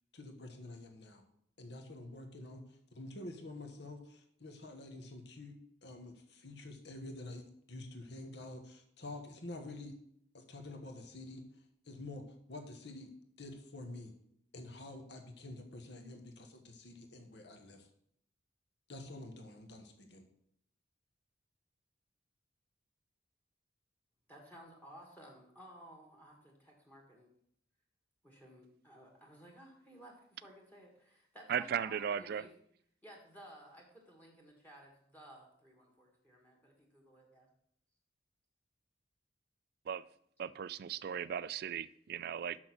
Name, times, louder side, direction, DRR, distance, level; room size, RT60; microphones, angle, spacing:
voice 1, 0.1-1.2 1.6-2.6 2.9-9.9 10.3-11.4 11.9-13.1 13.4-14.1 14.5-17.9 18.9-20.2, left 2 dB, 65° left, 5 dB, 1.2 m, -48 dB
voice 2, 24.3-27.3 28.2-32.5 33.0-37.5, equal, 10° left, 0 dB, 1.6 m, -56 dB
voice 3, 31.5-32.5 39.9-40.0 40.4-42.6, right 8 dB, 55° right, 18 dB, 0.3 m, -37 dB
6.3 x 6.1 x 6.1 m, 0.69 s
head